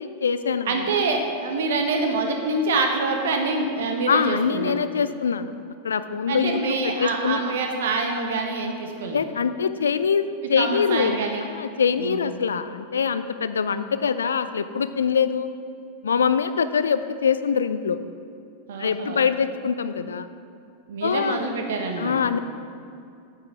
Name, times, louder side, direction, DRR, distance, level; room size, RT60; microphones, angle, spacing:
voice 1, 0.0-0.9 4.1-5.5 5.8-7.4 9.1-11.2 11.5-15.5 16.0-18.0 18.8-20.3 21.0-21.4 22.0-22.4, left 6 dB, 70° left, 12 dB, 0.4 m, -24 dB
voice 2, 0.7-4.8 6.3-9.2 10.6-11.4 12.0-12.2 18.7-19.3 20.9-22.1, right 3 dB, 60° right, 3 dB, 1.2 m, -26 dB
9.4 x 7.7 x 4.6 m, 2.5 s
figure-of-eight pair, 90°, 0 cm